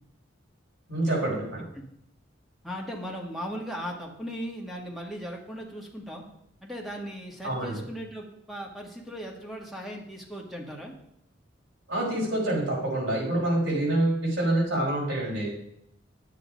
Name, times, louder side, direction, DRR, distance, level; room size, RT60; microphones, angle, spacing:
voice 1, 0.9-1.6 7.4-7.8 11.9-15.5, right 1 dB, 70° right, -4 dB, 5.2 m, -26 dB
voice 2, 2.6-6.2 6.6-10.9, equal, ahead, -1 dB, 1.6 m, -38 dB
9.7 x 8.2 x 5.2 m, 0.75 s
head